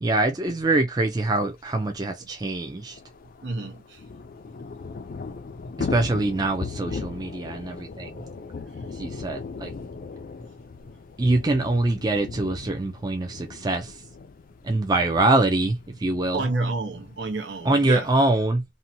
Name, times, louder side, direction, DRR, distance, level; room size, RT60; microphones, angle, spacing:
voice 1, 0.0-3.0 5.8-8.2 9.0-9.7 11.2-13.9 14.6-16.4 17.7-18.6, right 2 dB, 20° right, 0.4 m, -24 dB
Thunder / Rain, 1.5-1.6 1.8-1.9 2.2-18.1, left 4 dB, 50° left, 0.4 m, -38 dB
voice 2, 3.4-4.0 16.3-18.1, right 3 dB, 75° right, 0.9 m, -30 dB
2.7 x 2.1 x 2.7 m
head